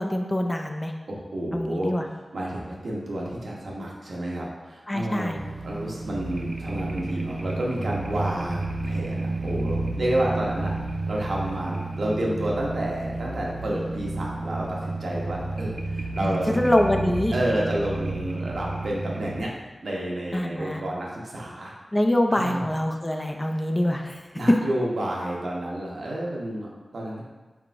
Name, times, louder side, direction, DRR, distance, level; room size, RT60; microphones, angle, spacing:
voice 1, 0.0-0.9 1.5-2.0 4.9-5.4 16.2-17.3 20.3-20.8 21.9-24.2, left 1 dB, 25° left, 4 dB, 0.4 m, -25 dB
voice 2, 1.1-1.9 2.3-5.3 5.6-10.7 11.1-16.5 17.3-19.5 19.8-21.7 22.3-22.7 24.4-27.2, right 1 dB, 90° right, -3 dB, 0.8 m, -30 dB
sound 1, 5.4-19.4, right 2 dB, 40° right, 0.6 m, -31 dB
4.5 x 3.6 x 2.5 m, 1.3 s
wide cardioid pair, 65°, 0 cm